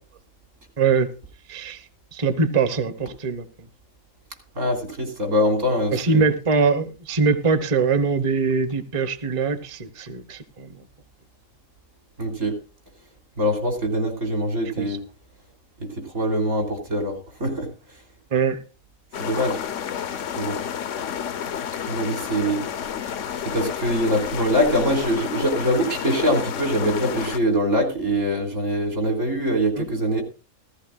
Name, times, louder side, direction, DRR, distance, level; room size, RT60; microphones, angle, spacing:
voice 1, 0.8-1.1 1.5-1.8 2.1-3.4 5.9-10.7 14.8-15.0 18.3-18.6 29.8-29.9, right 4 dB, 25° right, 0.9 m, -22 dB
voice 2, 4.6-6.2 12.2-12.5 13.4-15.0 16.1-17.1 17.4-17.7 19.2-19.6 20.4-20.6 21.9-22.6 23.4-30.2, equal, 70° right, 4.0 m, -23 dB
sound 1, 19.1-27.4, left 8 dB, 70° left, 1.1 m, -30 dB
16.0 x 14.5 x 2.5 m
omnidirectional pair, 1.4 m